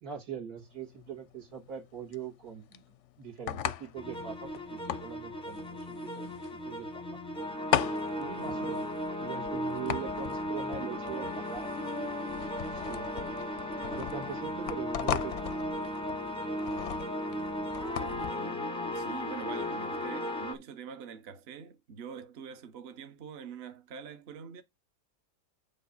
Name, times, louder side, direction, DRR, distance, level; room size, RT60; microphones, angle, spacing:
voice 1, 0.0-2.8 3.2-6.3 6.6-7.2 8.2-8.8 9.2-12.1 12.7-13.1 13.8-15.5 19.9-20.0, right 8 dB, 80° right, 2.4 m, -42 dB
sound 1, 0.6-18.3, left 10 dB, 65° left, 0.8 m, -38 dB
sound 2, 4.0-20.5, left 1 dB, 5° left, 0.6 m, -36 dB
voice 2, 8.3-8.9 18.1-18.7 18.9-24.6, right 6 dB, 50° right, 0.9 m, -45 dB
7.4 x 5.3 x 4.0 m
omnidirectional pair, 1.6 m